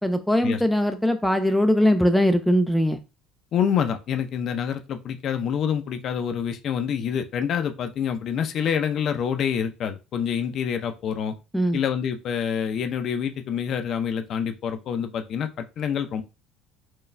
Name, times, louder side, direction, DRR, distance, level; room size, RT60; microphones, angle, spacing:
voice 1, 0.0-3.0 11.5-11.8, equal, ahead, 7 dB, 0.4 m, -21 dB
voice 2, 3.5-11.4 11.7-16.2, left 8 dB, 45° left, 8 dB, 0.6 m, -27 dB
4.6 x 2.3 x 3.2 m, 0.28 s
cardioid pair, 125°, 0 cm